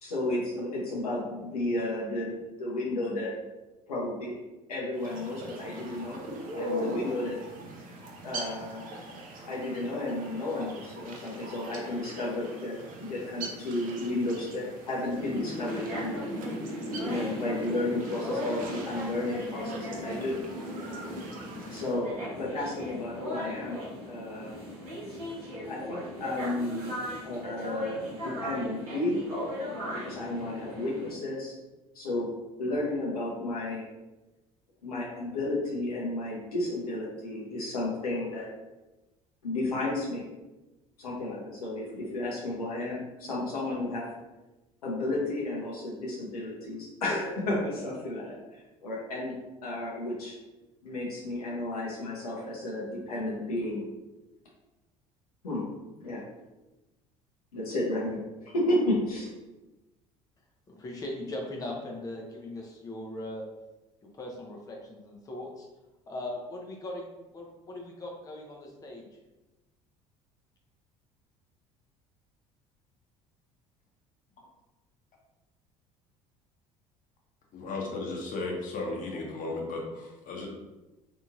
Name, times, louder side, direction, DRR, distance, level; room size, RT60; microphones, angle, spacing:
voice 1, 0.0-3.3 3.9-4.4 4.7-6.2 6.5-7.4 8.2-8.8 9.5-16.2 17.0-20.4 21.7-24.6 25.7-29.3 29.9-31.5 31.9-32.3 32.6-33.9 34.8-38.5 39.4-40.2 41.0-44.1 44.8-48.4 48.8-49.3 49.6-50.3 50.8-53.8 55.4-55.7 56.0-56.2 57.5-59.3, left 2 dB, 80° left, -4 dB, 0.7 m, -32 dB
sound 1, 4.9-22.0, right 1 dB, 45° right, 0.6 m, -42 dB
sound 2, 15.1-31.1, equal, 70° right, 1.2 m, -37 dB
voice 2, 60.7-63.5 64.1-65.7 66.1-67.1 67.3-69.1, left 1 dB, 20° left, 0 dB, 0.5 m, -39 dB
voice 3, 77.5-80.5, left 3 dB, 45° left, -1 dB, 0.8 m, -35 dB
2.8 x 2.6 x 2.4 m, 1.1 s
figure-of-eight pair, 60°, 19 cm